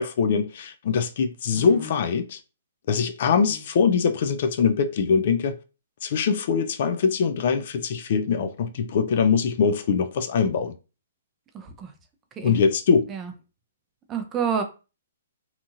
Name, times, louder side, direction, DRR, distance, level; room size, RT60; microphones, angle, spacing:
voice 1, 0.0-2.4 2.9-5.6 6.0-10.7 12.4-13.1, left 6 dB, 55° left, 0.3 m, -22 dB
voice 2, 1.5-2.0 3.3-3.6 11.5-11.9 12.4-12.6 13.1-13.3 14.1-14.6, right 6 dB, 20° right, 0.5 m, -30 dB
2.8 x 2.6 x 2.4 m
hypercardioid pair, 135°, 0 cm